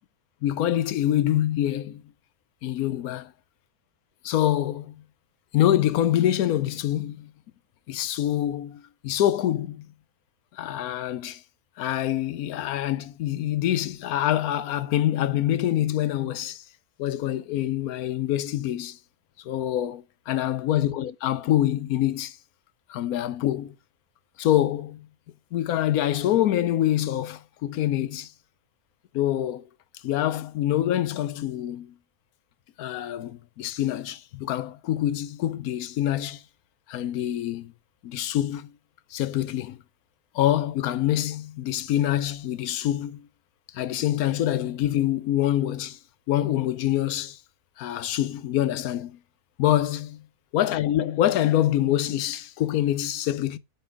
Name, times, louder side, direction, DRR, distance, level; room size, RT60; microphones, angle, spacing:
voice 1, 0.4-2.0 2.6-3.3 4.2-4.9 5.5-7.3 7.9-9.8 10.5-11.4 11.8-16.6 17.0-19.0 19.4-20.0 20.3-22.4 22.9-23.7 24.4-25.1 25.5-28.3 29.1-29.6 30.0-31.9 32.8-36.4 36.9-37.7 38.0-38.7 39.1-39.8 40.3-43.3 43.7-46.0 46.3-47.4 47.8-49.2 49.6-50.1 50.5-53.6, left 12 dB, 75° left, 1.1 m, -25 dB
7.8 x 4.4 x 4.8 m
omnidirectional pair, 1.6 m